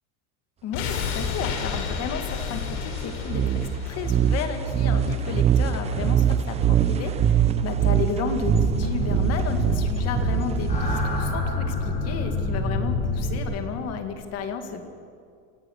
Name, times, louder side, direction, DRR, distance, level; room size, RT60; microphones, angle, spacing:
voice 1, 0.6-14.9, left 6 dB, 35° left, 6 dB, 2.1 m, -33 dB
sound 1, 0.7-5.7 6.0-6.1, left 6 dB, 70° left, 3.7 m, -31 dB
sound 2, 3.3-11.2, right 9 dB, 15° right, 0.6 m, -23 dB
sound 3, 8.3-13.4, left 2 dB, 20° left, 3.9 m, -27 dB
27.0 x 17.0 x 6.5 m, 2.3 s
cardioid pair, 170°, 43 cm